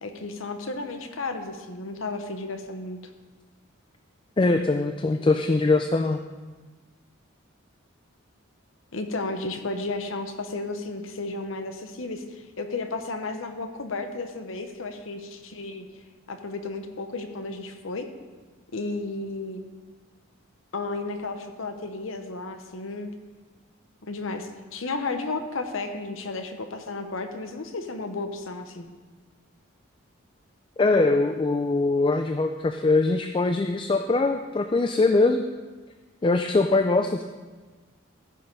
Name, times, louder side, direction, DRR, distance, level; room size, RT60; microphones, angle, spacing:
voice 1, 0.0-3.0 8.9-15.9 16.3-18.1 18.7-19.6 20.7-23.1 24.0-28.9, left 3 dB, 70° left, 7 dB, 0.9 m, -33 dB
voice 2, 4.4-6.2 30.8-35.4 36.2-37.2, left 3 dB, 25° left, 6 dB, 0.3 m, -22 dB
14.0 x 5.6 x 5.2 m, 1.3 s
head